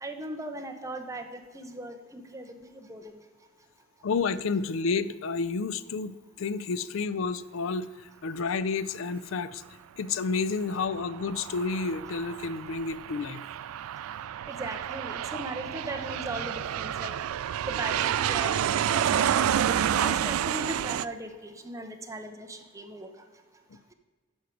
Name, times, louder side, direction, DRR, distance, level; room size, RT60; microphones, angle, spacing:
voice 1, 0.0-3.2 14.5-23.3, right 1 dB, 15° right, 5 dB, 0.7 m, -38 dB
voice 2, 4.0-9.6 10.0-13.4 23.7-23.8, left 4 dB, 65° left, 15 dB, 0.4 m, -30 dB
Aircraft, 10.8-21.1, right 10 dB, 85° right, 0.3 m, -29 dB
11.5 x 4.6 x 5.1 m, 1.4 s
head